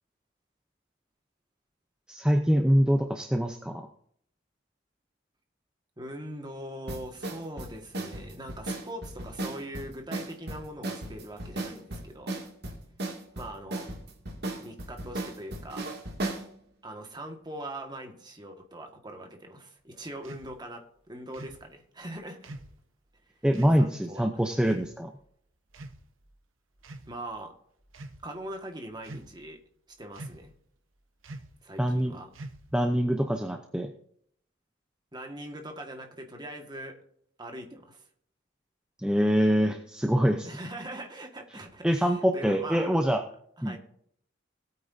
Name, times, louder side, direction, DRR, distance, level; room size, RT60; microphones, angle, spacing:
voice 1, 2.1-3.9 23.4-25.1 31.8-32.1 32.7-33.9 39.0-40.5 41.8-43.2 43.6-43.8, equal, 5° right, 4 dB, 0.7 m, -24 dB
voice 2, 6.0-12.4 13.4-13.9 14.6-15.9 16.8-22.6 23.8-24.3 27.1-27.6 28.2-29.6 29.9-30.5 31.6-32.3 35.1-37.0 37.4-38.1 40.4-42.9 43.6-43.8, right 1 dB, 20° right, 3 dB, 1.7 m, -41 dB
sound 1, 6.9-16.5, right 2 dB, 55° right, 2.4 m, -36 dB
sound 2, 20.2-20.5 21.3-21.6 22.4-22.8 23.5-23.8 24.6-24.9 25.7-26.3 26.8-27.1 27.8-28.2 29.0-29.5 30.1-30.5 31.2-31.6 32.3-32.8, right 2 dB, 85° right, 1.2 m, -44 dB
19.0 x 8.9 x 2.7 m, 0.65 s
head